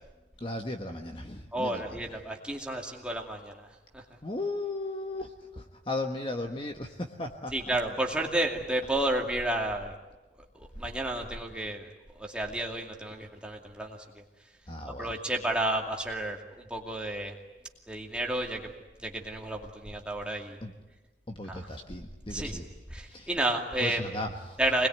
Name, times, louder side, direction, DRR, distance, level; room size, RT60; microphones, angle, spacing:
voice 1, 0.4-2.2 4.2-7.8 14.7-15.2 20.6-20.7 21.3-22.7 23.1-23.3 23.8-24.6, left 2 dB, 30° left, 4 dB, 1.3 m, -36 dB
voice 2, 1.5-3.7 3.9-4.0 7.5-10.0 10.6-14.0 15.0-17.3 17.9-18.7 19.0-20.6 21.5-21.7 22.3-24.0 24.6-24.9, right 1 dB, 5° right, 0 dB, 2.4 m, -31 dB
26.0 x 21.0 x 9.4 m, 1.1 s
head